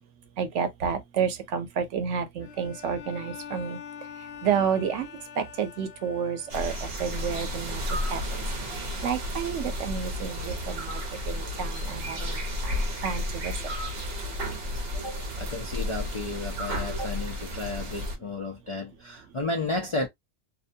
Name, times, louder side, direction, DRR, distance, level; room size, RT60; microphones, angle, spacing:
voice 1, 0.4-3.8 4.4-5.1 5.4-7.8 8.1-8.2 9.0-11.0 11.3-12.4 12.6-12.8 13.0-13.5, right 7 dB, 85° right, 1.0 m, -30 dB
Bowed string instrument, 2.4-7.0, left 8 dB, 70° left, 0.8 m, -44 dB
sound 1, 6.5-18.2, left 1 dB, 60° right, 1.0 m, -32 dB
voice 2, 14.9-20.1, left 2 dB, 45° left, 0.4 m, -33 dB
2.7 x 2.1 x 2.6 m
omnidirectional pair, 1.2 m